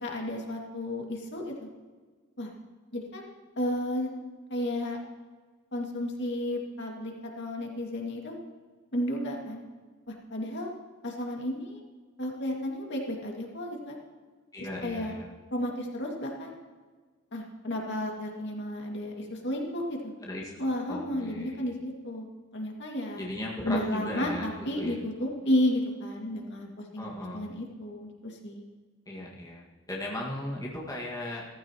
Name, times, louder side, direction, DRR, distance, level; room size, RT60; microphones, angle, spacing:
voice 1, 0.0-1.7 2.4-2.5 2.9-4.2 4.5-5.0 5.7-8.4 8.9-9.6 10.1-10.7 11.0-11.8 12.2-14.0 14.8-15.1 15.5-16.5 17.3-20.1 20.6-23.2 23.6-28.7, left 1 dB, 60° left, 0 dB, 2.2 m, -32 dB
voice 2, 14.5-15.3 20.2-20.5 20.9-21.6 23.2-25.0 27.0-27.4 29.1-31.5, left 1 dB, 20° left, -3 dB, 1.9 m, -37 dB
16.0 x 14.5 x 3.0 m, 1.4 s
head